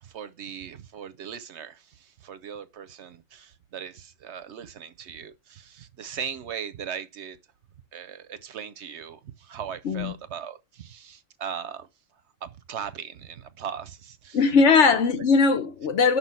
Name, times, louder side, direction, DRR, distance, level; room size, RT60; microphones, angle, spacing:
voice 1, 0.0-7.4 7.9-11.9 12.4-14.4 14.8-14.9, right 8 dB, 65° right, 0.9 m, -38 dB
voice 2, 14.3-16.2, left 4 dB, 65° left, 1.2 m, -19 dB
6.1 x 5.5 x 5.6 m
omnidirectional pair, 1.3 m